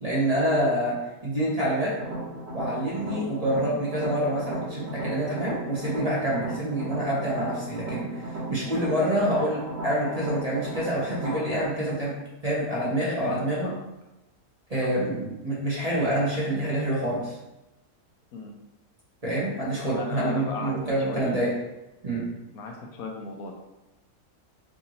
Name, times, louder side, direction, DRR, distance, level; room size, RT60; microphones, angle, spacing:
voice 1, 0.0-1.0 1.2-1.9 2.5-12.1 12.4-13.7 14.7-17.3 19.2-21.5 22.0-22.3, right 1 dB, 30° right, -7 dB, 0.9 m, -27 dB
sound 1, 2.0-11.6, right 2 dB, 50° right, 1.3 m, -36 dB
voice 2, 13.3-13.8 14.8-15.0 18.3-18.5 20.0-21.4 22.5-23.5, left 3 dB, 75° left, 1 dB, 1.1 m, -37 dB
4.8 x 2.7 x 2.8 m, 0.96 s
omnidirectional pair, 1.6 m